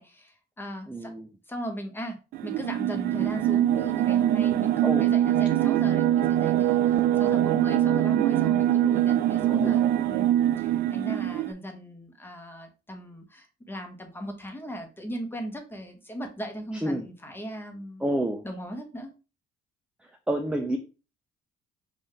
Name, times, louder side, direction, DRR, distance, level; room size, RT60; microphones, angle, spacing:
voice 1, 0.0-1.1 1.5-18.1 18.4-19.1, equal, 10° left, 5 dB, 1.1 m, -38 dB
voice 2, 0.9-1.3 4.8-5.1 9.5-9.8 16.8-17.1 18.0-18.4 20.3-20.8, right 1 dB, 5° right, 3 dB, 0.5 m, -28 dB
sound 1, 2.3-11.5, right 12 dB, 65° right, 0.4 m, -23 dB
5.6 x 2.6 x 3.2 m, 0.32 s
cardioid pair, 110°, 17 cm